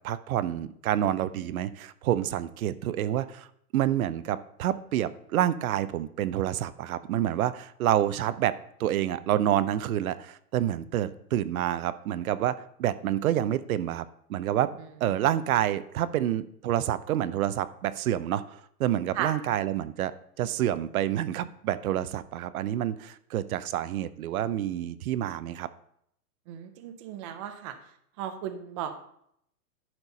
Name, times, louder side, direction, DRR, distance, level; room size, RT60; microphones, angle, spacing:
voice 1, 0.0-3.5 3.7-14.0 14.3-25.7, right 12 dB, 65° right, 14 dB, 0.7 m, -28 dB
voice 2, 26.5-27.7 28.2-28.9, right 10 dB, 20° right, 6 dB, 0.4 m, -35 dB
11.0 x 4.6 x 5.3 m, 0.70 s
hypercardioid pair, 150°, 46 cm